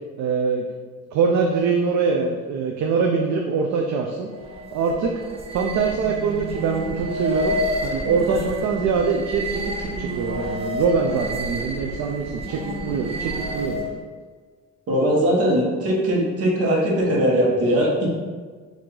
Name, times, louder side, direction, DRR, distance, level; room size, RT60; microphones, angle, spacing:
voice 1, 0.2-0.7 1.1-4.3 4.7-5.1 5.5-7.6 7.8-13.9, right 5 dB, 70° right, 1 dB, 0.5 m, -23 dB
sound 1, 4.3-14.0, equal, 20° right, 0.5 m, -29 dB
voice 2, 14.9-18.1, equal, 50° right, -3 dB, 1.2 m, -20 dB
4.7 x 2.7 x 3.7 m, 1.5 s
cardioid pair, 155°, 30 cm